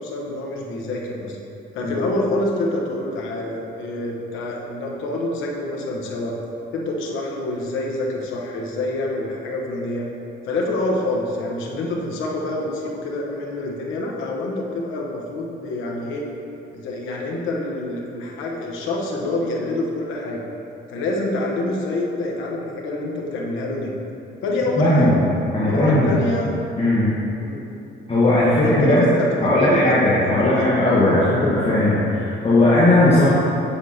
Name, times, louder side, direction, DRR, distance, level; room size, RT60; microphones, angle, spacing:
voice 1, 0.0-1.4 1.7-6.3 6.7-10.1 10.4-16.2 16.7-20.4 20.9-23.9 24.4-25.1 25.6-26.5 27.4-27.6 28.4-29.3 29.6-29.9 30.2-30.7 31.0-31.2, left 2 dB, 90° left, -2 dB, 1.1 m, -26 dB
voice 2, 24.8-25.1 25.5-26.2 26.8-27.1 28.1-29.0 29.4-33.3, left 1 dB, 30° left, -9 dB, 1.4 m, -17 dB
7.9 x 7.0 x 2.9 m, 2.9 s
cardioid pair, 90°, 20 cm